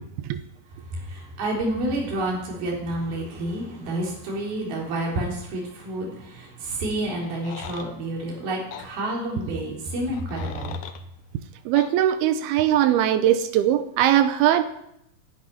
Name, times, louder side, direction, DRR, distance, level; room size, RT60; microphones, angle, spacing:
voice 1, 0.7-10.7, right 1 dB, 75° right, -3 dB, 5.4 m, -29 dB
sound 1, 7.2-7.9 8.7-8.9 10.1-11.0 11.8-11.9, left 10 dB, 80° left, 1.6 m, -40 dB
voice 2, 11.7-14.6, right 11 dB, 90° right, 10 dB, 2.8 m, -20 dB
11.0 x 11.0 x 9.8 m, 0.77 s
omnidirectional pair, 4.4 m